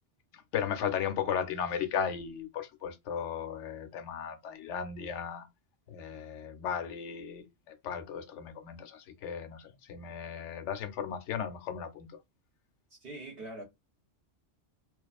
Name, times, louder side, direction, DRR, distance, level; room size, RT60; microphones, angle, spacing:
voice 1, 0.5-5.5 5.9-12.2, left 8 dB, 80° left, 0.9 m, -36 dB
voice 2, 12.9-13.6, right 2 dB, 60° right, 0.8 m, -43 dB
2.4 x 2.3 x 2.3 m
omnidirectional pair, 1.2 m